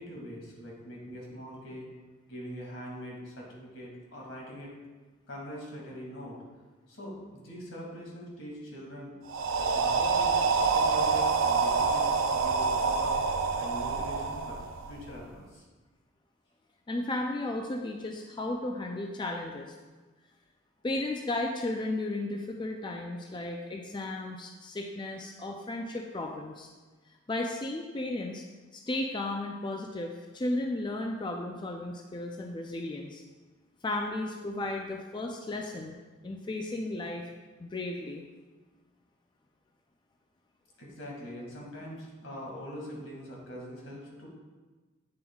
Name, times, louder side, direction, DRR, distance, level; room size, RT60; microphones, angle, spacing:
voice 1, 0.0-1.9 2.3-4.7 5.3-6.4 6.9-9.1 9.6-13.1 13.5-14.6 14.9-15.6 40.8-44.3, equal, 80° left, -3 dB, 2.2 m, -43 dB
sound 1, 9.3-15.2, right 4 dB, 90° right, 0.5 m, -27 dB
voice 2, 16.9-19.7 20.8-26.7 27.1-28.4 28.7-33.2 33.8-35.9 36.2-37.3 37.6-38.2, left 2 dB, 25° left, 2 dB, 0.4 m, -34 dB
8.7 x 7.0 x 2.3 m, 1.3 s
head